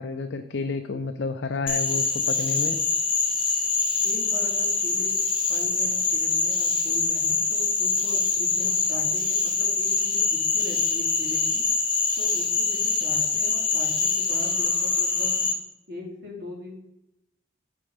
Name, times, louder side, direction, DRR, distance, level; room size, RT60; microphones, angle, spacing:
voice 1, 0.0-2.8, left 4 dB, 60° left, 6 dB, 0.5 m, -30 dB
Frog, 1.7-15.5, left 4 dB, 25° left, 1.2 m, -24 dB
voice 2, 4.0-5.2 5.5-11.6 12.2-15.3 15.9-16.8, left 1 dB, 55° right, -4 dB, 2.7 m, -40 dB
8.8 x 4.4 x 5.0 m, 0.87 s
head